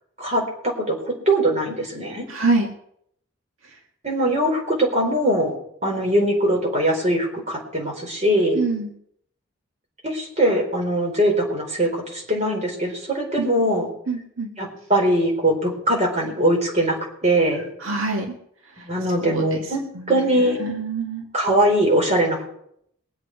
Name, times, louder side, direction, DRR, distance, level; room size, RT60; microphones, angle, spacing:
voice 1, 0.2-2.3 4.0-5.5 5.8-8.6 10.0-13.9 14.6-17.0 17.2-17.6 18.8-19.8 20.1-20.6 21.3-22.5, right 1 dB, 35° right, -1 dB, 4.5 m, -21 dB
voice 2, 2.3-2.7 8.6-8.9 13.4-13.5 14.1-14.5 17.8-18.3 19.2-19.4 20.6-21.2, right 3 dB, 80° right, 1 dB, 1.9 m, -24 dB
23.5 x 8.3 x 4.8 m, 0.70 s
head